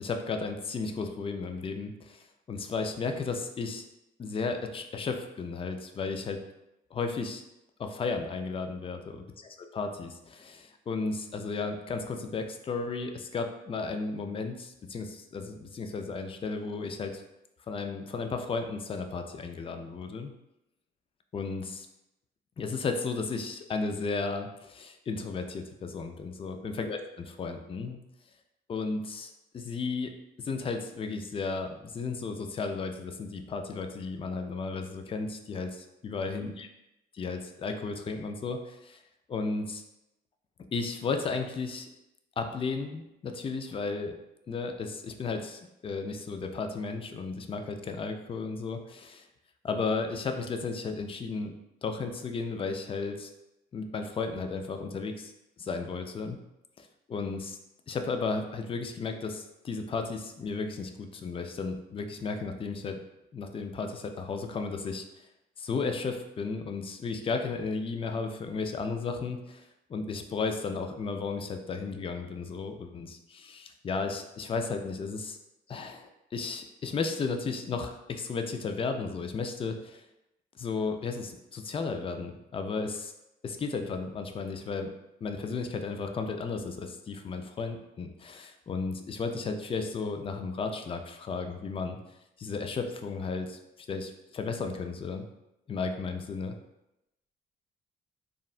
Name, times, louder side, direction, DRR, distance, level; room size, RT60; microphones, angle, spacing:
voice 1, 0.0-3.8 4.2-6.4 6.9-7.4 7.8-9.2 9.7-17.2 17.7-20.3 21.3-21.9 22.6-28.0 28.7-36.7 37.1-39.0 39.3-39.8 40.7-41.9 42.4-44.1 44.5-49.3 49.6-51.6 51.8-53.3 53.7-55.3 55.6-56.4 56.8-57.6 57.9-63.0 63.3-65.3 65.6-75.4 75.7-80.0 80.6-83.1 83.4-84.9 85.2-92.0 92.4-93.6 93.9-95.3 95.7-96.6, left 4 dB, 30° left, 6 dB, 0.3 m, -34 dB
3.6 x 2.1 x 2.4 m, 0.89 s
cardioid pair, 90°, 20 cm